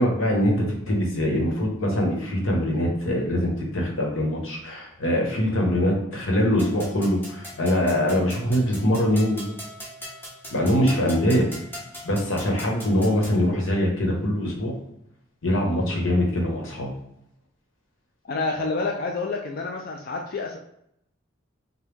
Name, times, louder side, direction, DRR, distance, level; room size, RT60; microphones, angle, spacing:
voice 1, 0.0-9.6 10.5-11.5 12.0-14.8 15.4-16.9, equal, 90° left, 0 dB, 1.1 m, -23 dB
sound 1, 6.6-13.4, left 1 dB, 10° left, 0.9 m, -41 dB
voice 2, 18.3-20.6, left 3 dB, 50° left, 1 dB, 0.4 m, -28 dB
5.1 x 2.2 x 3.3 m, 0.77 s
head